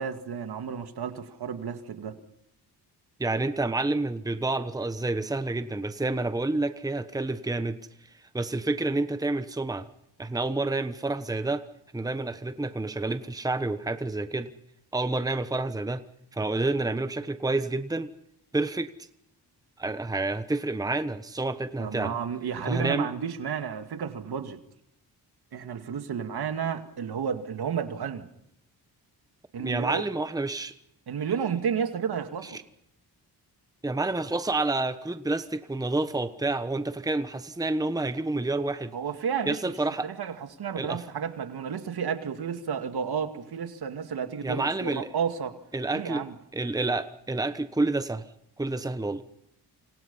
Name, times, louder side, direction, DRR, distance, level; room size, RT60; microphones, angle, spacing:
voice 1, 0.0-2.2 21.8-24.6 25.5-28.3 29.5-30.0 31.1-32.6 38.9-39.6 40.0-45.6 45.9-46.3, right 7 dB, 65° right, 2.4 m, -32 dB
voice 2, 3.2-7.8 8.3-9.9 10.2-11.6 11.9-14.5 14.9-16.0 16.3-18.1 18.5-18.9 19.8-22.2 22.7-23.1 29.6-30.7 32.4-32.6 33.8-38.9 39.5-40.1 40.8-41.0 44.4-45.1 45.7-46.3 46.5-48.2 48.6-49.2, right 2 dB, 10° right, 1.2 m, -29 dB
28.0 x 26.0 x 5.6 m
cardioid pair, 90°, 41 cm